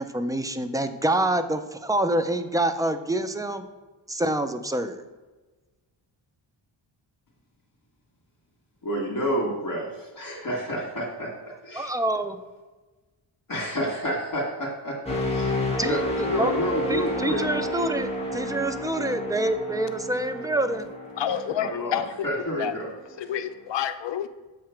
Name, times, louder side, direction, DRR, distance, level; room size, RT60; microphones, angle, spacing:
voice 1, 0.0-3.6 4.1-5.0 11.7-12.4 15.8-16.0 16.4-16.5 16.9-20.9, right 1 dB, 10° right, 9 dB, 0.3 m, -26 dB
voice 2, 8.8-11.9 13.5-15.5 15.8-17.4 21.3-22.9 23.2-23.3, equal, 40° left, -3 dB, 1.7 m, -30 dB
sound 1, 15.1-22.9 23.3-23.6, left 1 dB, 10° left, 1.2 m, -31 dB
voice 3, 21.2-22.0 22.6-22.7 23.2-24.3, left 10 dB, 65° left, 11 dB, 0.5 m, -28 dB
7.6 x 2.9 x 5.6 m, 1.2 s
cardioid pair, 90°, 49 cm